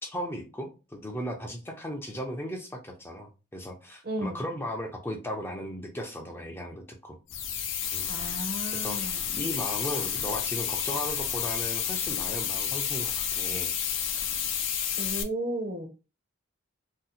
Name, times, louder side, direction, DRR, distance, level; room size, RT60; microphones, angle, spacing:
voice 1, 0.0-7.2 7.9-8.4 8.8-13.7, equal, 10° left, 2 dB, 0.4 m, -36 dB
voice 2, 4.0-4.4 8.1-9.2 15.0-15.9, right 1 dB, 50° right, 6 dB, 0.7 m, -34 dB
sound 1, 7.3-15.2, left 8 dB, 70° left, 0.5 m, -30 dB
2.7 x 2.1 x 4.0 m, 0.30 s
head